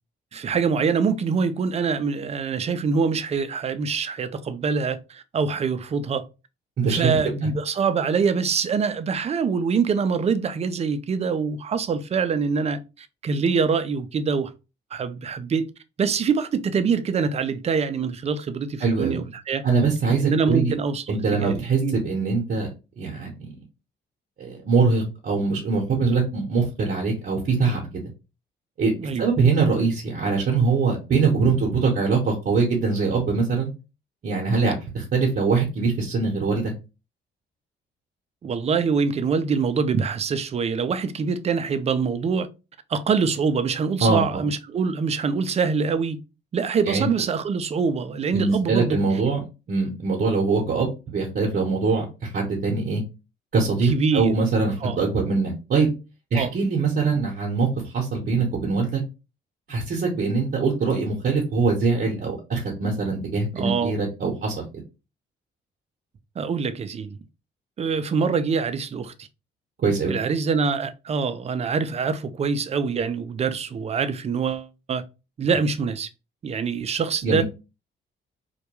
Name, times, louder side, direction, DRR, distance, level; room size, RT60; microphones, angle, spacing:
voice 1, 0.3-6.2 6.8-14.5 14.9-15.7 16.0-19.6 20.2-22.0 29.0-29.3 38.4-42.5 42.9-46.2 46.5-49.0 53.8-54.3 54.8-55.0 56.3-56.5 63.5-63.9 66.4-67.2 67.8-69.3 70.1-75.0 75.4-76.1 76.4-77.4, right 5 dB, 35° right, 0.4 m, -24 dB
voice 2, 6.8-7.5 18.8-19.2 19.6-20.7 21.1-22.7 23.0-23.5 24.4-28.0 28.8-28.9 29.2-33.7 34.2-36.7 44.0-44.4 46.9-47.1 48.3-49.4 49.7-53.0 53.5-55.9 56.3-59.0 59.7-64.5 69.8-70.1 77.2-77.4, right 4 dB, 50° right, 0.8 m, -23 dB
2.2 x 2.2 x 2.8 m
cardioid pair, 90°, 20 cm